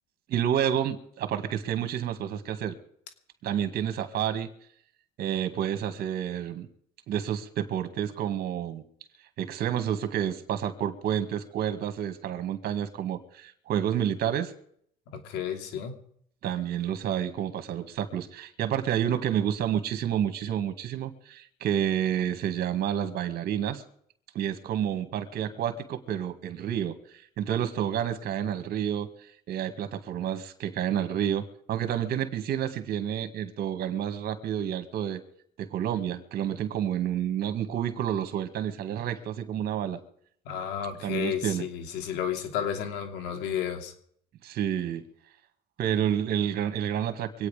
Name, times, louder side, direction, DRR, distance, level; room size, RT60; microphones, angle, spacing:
voice 1, 0.3-2.8 3.4-4.5 5.2-6.7 7.1-8.8 9.4-14.5 16.4-23.8 24.3-27.0 27.4-29.1 29.5-35.2 35.6-40.0 41.0-41.6 44.4-45.0 45.8-47.5, right 10 dB, 65° right, 9 dB, 2.0 m, -29 dB
voice 2, 15.1-15.9 40.4-43.9, left 8 dB, 90° left, 4 dB, 2.8 m, -32 dB
25.0 x 9.2 x 5.1 m, 0.65 s
cardioid pair, 110°, 17 cm